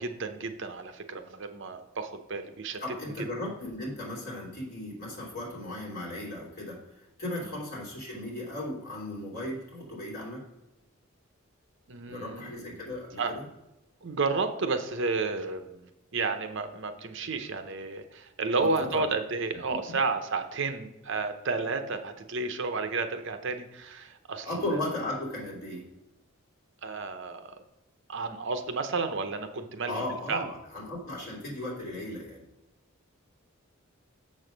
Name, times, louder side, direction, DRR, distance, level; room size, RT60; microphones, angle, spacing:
voice 1, 0.0-2.8 3.2-3.3 11.9-12.8 13.2-13.3 14.0-24.8 26.8-27.6 28.1-30.5, right 4 dB, 60° right, 7 dB, 0.7 m, -32 dB
voice 2, 2.8-10.4 12.0-13.4 18.6-19.0 19.9-20.0 24.4-25.9 29.8-32.4, left 1 dB, 45° left, -3 dB, 3.2 m, -36 dB
7.1 x 6.3 x 5.1 m, 0.95 s
head